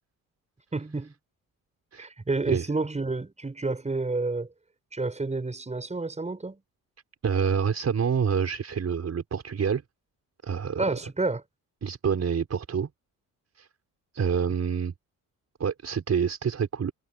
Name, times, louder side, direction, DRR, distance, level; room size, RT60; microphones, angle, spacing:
voice 1, 0.7-1.1 2.0-4.5 4.9-6.6 10.8-11.4, right 3 dB, 20° right, 5.4 m, -29 dB
voice 2, 7.2-9.8 10.4-11.0 11.8-12.9 13.6-13.7 14.1-14.9 15.6-16.9, right 7 dB, 45° right, 4.9 m, -27 dB
cardioid pair, 95°, 35 cm